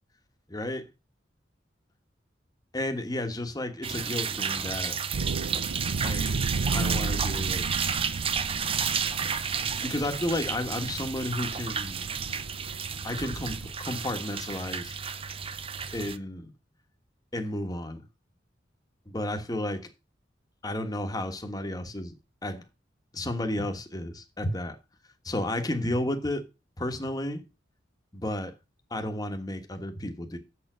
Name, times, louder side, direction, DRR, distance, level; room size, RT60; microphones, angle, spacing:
voice 1, 0.5-0.8 2.7-4.9 6.0-6.3 6.7-7.7 9.8-12.1 13.0-14.9 15.9-16.5 17.3-18.0 19.1-19.9 20.6-22.1 22.4-22.6 23.1-24.8 25.2-26.5 26.8-27.4 28.1-28.5 28.9-30.4, left 1 dB, 20° left, 1.4 m, -32 dB
sound 1, 3.8-16.2, right 6 dB, 30° right, 0.6 m, -32 dB
sound 2, 5.1-13.7, right 3 dB, 85° right, 0.7 m, -34 dB
7.4 x 6.9 x 6.1 m
head